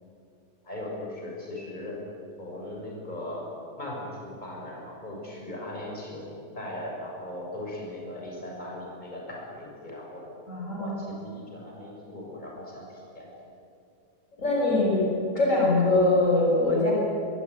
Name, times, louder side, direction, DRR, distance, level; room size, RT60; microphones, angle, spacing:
voice 1, 0.6-2.0 2.4-3.5 3.8-6.3 6.5-10.2 10.8-13.3, left 1 dB, 25° left, -2 dB, 6.8 m, -38 dB
voice 2, 10.5-11.0 14.4-15.1 15.3-16.9, left 2 dB, 50° left, -3 dB, 6.5 m, -22 dB
25.0 x 23.5 x 9.7 m, 2.6 s
omnidirectional pair, 1.8 m